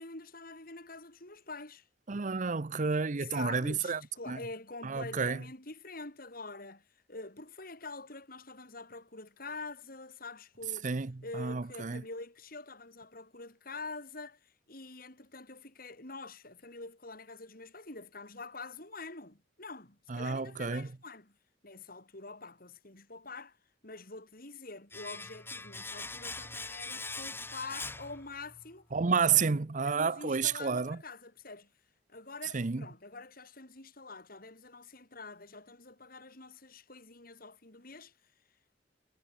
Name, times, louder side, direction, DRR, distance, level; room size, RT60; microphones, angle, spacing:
voice 1, 0.0-1.9 3.2-10.9 11.2-21.3 21.6-23.6 23.8-28.9 29.3-29.4 29.8-31.7 32.1-38.1, left 3 dB, 50° left, 5.5 m, -46 dB
voice 2, 2.1-4.0 4.3-4.4 4.8-5.4 10.8-12.0 20.1-20.9 28.9-31.0 32.5-32.9, right 5 dB, 45° right, 0.7 m, -30 dB
Domestic sounds home sounds, 24.9-28.7 29.0-29.1, left 3 dB, 10° left, 6.2 m, -42 dB
head